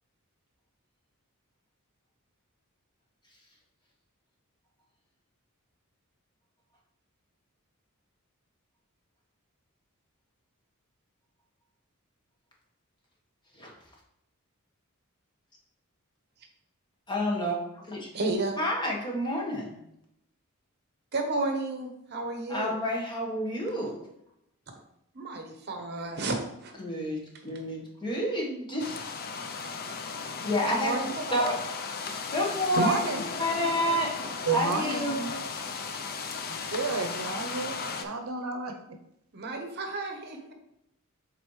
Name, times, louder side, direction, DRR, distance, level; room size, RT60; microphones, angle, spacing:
voice 1, 17.1-18.1 18.6-19.8 22.5-24.0 26.8-29.0 30.4-30.9 31.3-31.5 32.3-33.0 33.3-34.1 34.5-35.6, equal, 20° left, -2 dB, 1.3 m, -29 dB
voice 2, 18.1-18.6 21.1-22.7 25.1-26.7 27.5-27.6 30.6-31.4 32.8-32.9 39.3-40.5, right 2 dB, 50° right, 4 dB, 0.9 m, -32 dB
sound 1, 28.8-38.0, left 5 dB, 45° left, 0.5 m, -36 dB
voice 3, 32.7-33.2 34.5-35.2 36.5-39.0, right 3 dB, 70° right, 4 dB, 0.8 m, -31 dB
7.7 x 4.1 x 3.2 m, 0.78 s
head